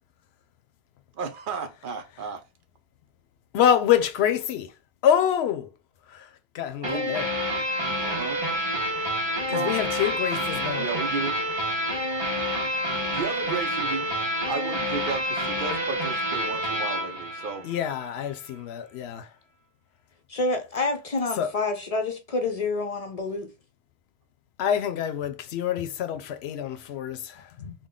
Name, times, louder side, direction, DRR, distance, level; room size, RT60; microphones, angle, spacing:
voice 1, 1.1-2.4 6.8-7.2 8.0-8.4 9.5-9.8 10.8-11.4 13.1-14.2 14.5-17.7, right 4 dB, 60° right, 0.7 m, -33 dB
voice 2, 3.5-4.7 5.0-5.7 6.1-6.3 6.5-7.3 9.5-10.9 17.6-19.3 21.4-21.5 24.6-27.7, left 9 dB, 80° left, 0.8 m, -26 dB
sound 1, 6.8-18.1, equal, 35° right, 1.2 m, -28 dB
voice 3, 20.3-23.5, left 3 dB, 50° left, 0.5 m, -28 dB
3.7 x 2.1 x 3.6 m
omnidirectional pair, 1.1 m